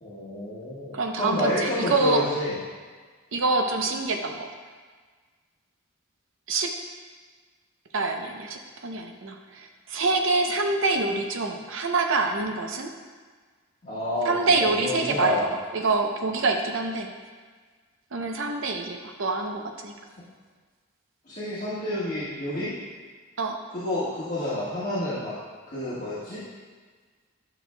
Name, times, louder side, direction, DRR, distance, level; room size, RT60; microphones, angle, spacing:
voice 1, 0.0-2.6 13.8-14.3 14.6-15.5 21.3-22.7 23.7-25.3 25.7-26.4, left 1 dB, 35° left, -13 dB, 1.5 m, -29 dB
voice 2, 0.9-2.2 3.3-4.5 6.5-6.7 7.9-12.9 14.3-15.5 15.7-17.1 18.1-19.9 23.4-23.6, right 3 dB, 60° right, 3 dB, 0.7 m, -26 dB
10.0 x 6.2 x 2.3 m, 1.5 s
head